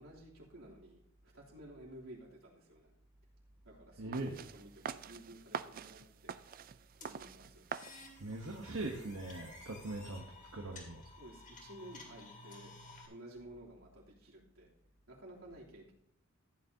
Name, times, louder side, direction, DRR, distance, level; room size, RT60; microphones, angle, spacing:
voice 1, 0.0-2.9 3.6-6.3 7.0-7.6 9.8-9.9 11.0-12.7 13.1-14.7 15.1-15.9, right 1 dB, 90° right, -5 dB, 3.2 m, -54 dB
voice 2, 4.0-4.3 8.2-11.0, right 2 dB, 70° right, 0 dB, 1.1 m, -41 dB
sound 1, 4.1-9.2, right 7 dB, 45° right, 0.4 m, -46 dB
sound 2, 7.0-13.1, left 3 dB, 40° left, 2.3 m, -54 dB
15.0 x 9.5 x 2.8 m, 0.72 s
head